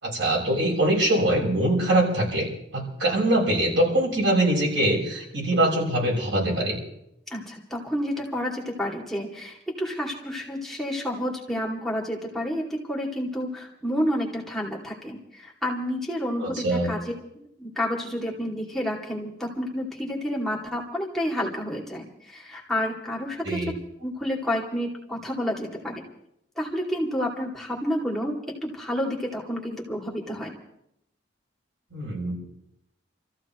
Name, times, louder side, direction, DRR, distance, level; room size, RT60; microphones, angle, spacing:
voice 1, 0.0-6.8 16.4-16.9 23.5-23.7 31.9-32.3, right 1 dB, 80° right, -2 dB, 6.9 m, -23 dB
voice 2, 7.3-23.7 24.0-26.0 26.6-28.3 28.6-30.6, equal, ahead, -3 dB, 2.6 m, -30 dB
29.0 x 14.5 x 3.1 m, 0.76 s
head